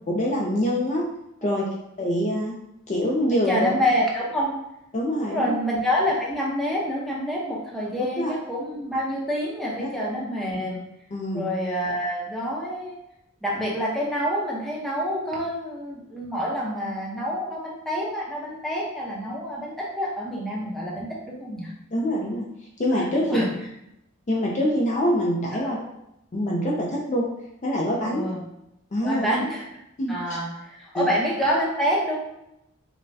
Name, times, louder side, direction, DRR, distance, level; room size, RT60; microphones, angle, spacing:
voice 1, 0.1-1.0 1.4-1.7 2.0-2.5 2.9-3.7 4.9-5.6 8.2-8.3 9.8-9.9 11.1-11.5 21.9-22.4 22.8-23.4 24.3-25.8 26.3-27.3 27.6-28.2 28.9-29.3 30.0-30.1 30.9-31.1, equal, 35° left, -2 dB, 0.4 m, -24 dB
voice 2, 3.3-4.5 5.2-10.8 11.3-13.0 13.4-21.7 23.2-23.5 25.5-25.8 28.0-28.4 29.0-29.6 30.1-32.2, equal, ahead, -5 dB, 0.7 m, -27 dB
5.4 x 2.1 x 2.6 m, 0.84 s
head